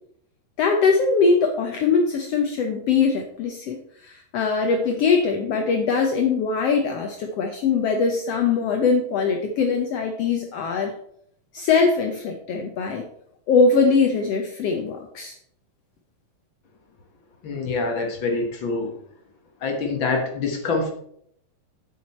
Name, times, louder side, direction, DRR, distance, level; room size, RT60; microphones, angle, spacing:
voice 1, 0.6-10.9 11.5-13.0 13.5-15.3, left 4 dB, 85° left, 3 dB, 1.4 m, -21 dB
voice 2, 17.4-18.9 19.6-20.9, left 3 dB, 60° left, 2 dB, 1.3 m, -25 dB
8.7 x 7.7 x 4.2 m, 0.69 s
omnidirectional pair, 4.0 m